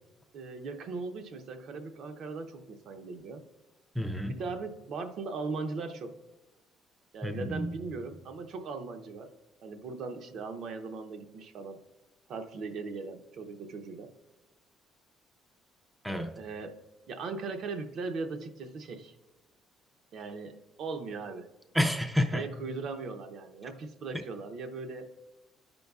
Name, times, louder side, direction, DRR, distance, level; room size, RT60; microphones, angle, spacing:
voice 1, 0.3-3.4 4.3-6.2 7.1-9.3 9.6-11.8 12.3-14.1 16.4-16.8 17.1-19.2 20.1-21.5 22.3-25.1, right 4 dB, 55° right, 7 dB, 0.6 m, -39 dB
voice 2, 4.0-4.4 7.2-7.7 16.0-16.4 21.7-22.5, left 1 dB, ahead, 5 dB, 0.4 m, -29 dB
13.5 x 5.2 x 2.3 m, 1.0 s
cardioid pair, 155°, 0 cm